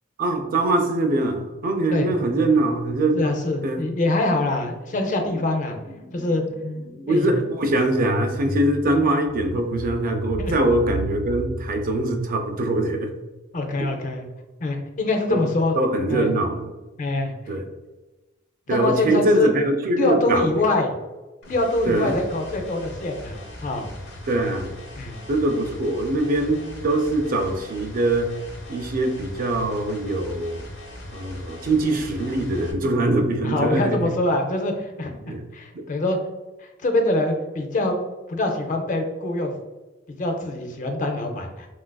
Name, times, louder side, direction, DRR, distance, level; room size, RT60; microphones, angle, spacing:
voice 1, 0.2-3.3 3.6-3.8 7.1-13.1 13.8-13.9 15.3-15.4 15.7-16.7 17.5-17.6 18.7-20.5 21.9-22.1 24.3-24.7 25.3-28.3 28.7-30.6 31.1-34.0 35.2-35.4 35.7-35.8, right 2 dB, 45° right, 5 dB, 0.4 m, -23 dB
voice 2, 3.1-5.8 6.1-6.4 7.1-7.3 10.4-10.5 13.5-14.3 14.6-15.8 16.1-16.3 17.0-17.3 18.7-19.5 19.9-20.9 21.5-23.9 25.0-25.2 33.4-36.2 36.8-38.0 38.3-39.5 40.2-41.7, left 2 dB, 40° left, 4 dB, 0.4 m, -24 dB
sound 1, 3.5-3.9 4.1-12.9, equal, 65° right, 0.8 m, -34 dB
sound 2, 21.4-32.7, left 1 dB, 85° left, 0.7 m, -39 dB
3.9 x 2.4 x 2.2 m, 1.1 s
head